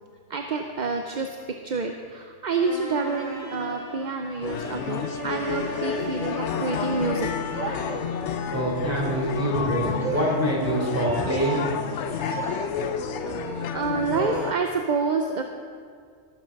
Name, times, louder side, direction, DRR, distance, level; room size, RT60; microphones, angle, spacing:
voice 1, 0.3-1.4 1.6-8.2 10.0-10.2 10.7-11.8 12.1-15.4, right 4 dB, 45° right, 4 dB, 0.7 m, -29 dB
sound 1, 2.6-7.9, left 1 dB, 35° left, 4.2 m, -37 dB
sound 2, 4.4-14.5, left 7 dB, 65° left, 0.9 m, -30 dB
voice 2, 8.5-11.6, right 1 dB, 10° right, -5 dB, 3.4 m, -25 dB
17.5 x 7.7 x 5.3 m, 2.1 s
omnidirectional pair, 1.3 m